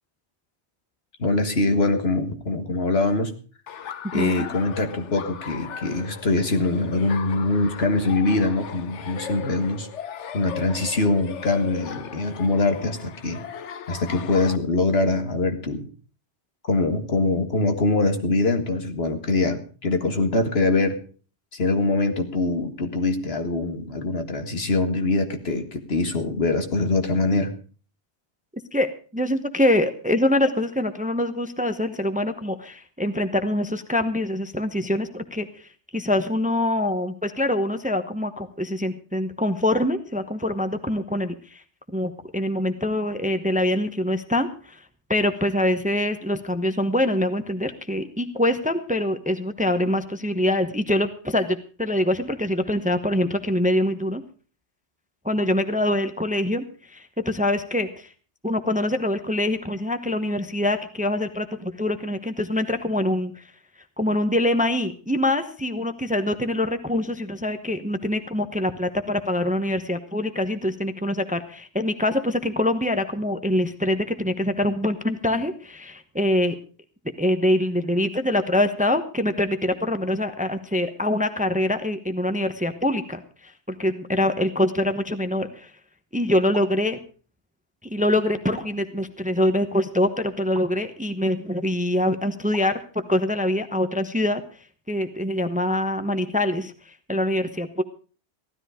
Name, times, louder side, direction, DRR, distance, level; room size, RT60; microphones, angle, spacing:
voice 1, 1.2-3.3 4.1-9.9 10.3-13.4 13.9-15.9 16.7-21.0 21.5-27.5, left 2 dB, 60° left, 6 dB, 1.9 m, -23 dB
Laughter, 3.7-14.6, left 7 dB, 90° left, 1.2 m, -38 dB
voice 2, 4.1-4.5 28.7-41.6 41.9-44.8 45.1-54.2 55.2-58.1 58.4-63.4 64.0-76.6 77.2-85.7 86.1-87.0 87.8-92.8 93.1-94.4 94.9-97.8, left 1 dB, 5° right, 9 dB, 0.9 m, -24 dB
sound 1, 86.5-86.8 88.6-88.9 90.5-90.8 92.5-92.8, right 2 dB, 40° right, 2.2 m, -41 dB
15.5 x 13.0 x 5.0 m, 0.39 s
omnidirectional pair, 1.2 m